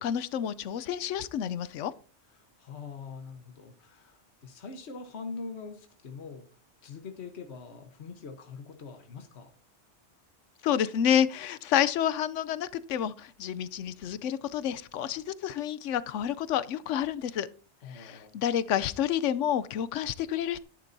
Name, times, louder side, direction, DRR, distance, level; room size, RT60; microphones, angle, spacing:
voice 1, 0.0-1.9 10.6-17.5 17.9-20.6, left 9 dB, 90° left, 1.0 m, -29 dB
voice 2, 2.3-6.5 6.8-9.5 17.8-18.4, left 4 dB, 65° left, 1.4 m, -43 dB
13.5 x 10.5 x 2.7 m
omnidirectional pair, 1.2 m